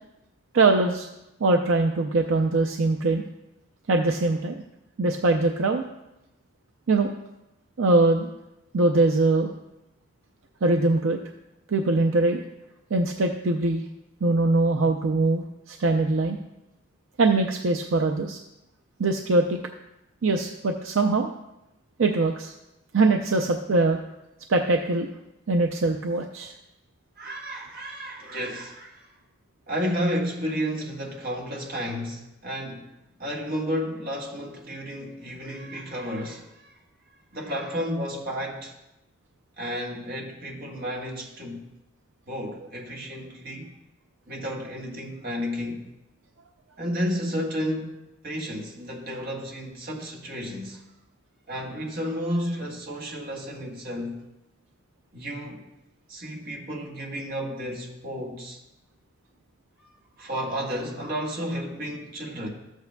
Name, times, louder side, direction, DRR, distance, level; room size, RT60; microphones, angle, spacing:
voice 1, 0.5-1.1 1.4-3.2 3.9-4.6 5.0-5.8 6.9-7.1 7.8-8.3 8.7-9.5 10.6-11.2 11.7-12.4 12.9-13.8 14.2-16.4 17.2-18.4 19.0-19.6 20.2-21.3 22.0-22.5 22.9-24.0 24.5-25.1 25.5-26.5, right 2 dB, 75° right, 3 dB, 0.5 m, -22 dB
voice 2, 27.2-29.1 29.7-32.9 33.2-36.8 37.3-38.7 39.6-41.7 42.3-43.8 44.3-45.9 46.8-48.0 48.2-50.8 51.5-54.2 55.1-55.7 56.1-58.6 60.2-62.5, equal, 50° right, -2 dB, 1.7 m, -32 dB
13.5 x 8.2 x 2.3 m, 0.90 s
head